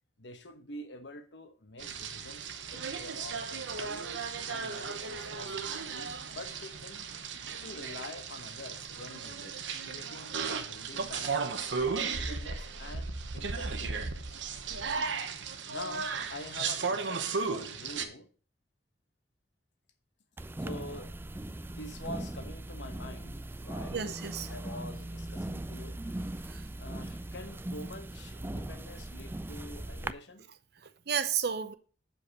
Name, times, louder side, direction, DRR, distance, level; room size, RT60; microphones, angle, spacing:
voice 1, 0.2-4.1 4.5-7.1 7.5-9.6 9.9-11.5 11.9-14.4 15.7-18.3 20.6-24.2 24.5-26.0 26.8-30.4, left 1 dB, 70° left, 1.2 m, -46 dB
sound 1, 1.8-18.1, right 5 dB, 85° right, 0.9 m, -35 dB
sound 2, 20.4-30.1, right 1 dB, 10° right, 0.3 m, -39 dB
voice 2, 23.9-24.5 26.5-26.7 30.8-31.7, right 7 dB, 60° right, 0.7 m, -33 dB
7.0 x 5.3 x 6.3 m
head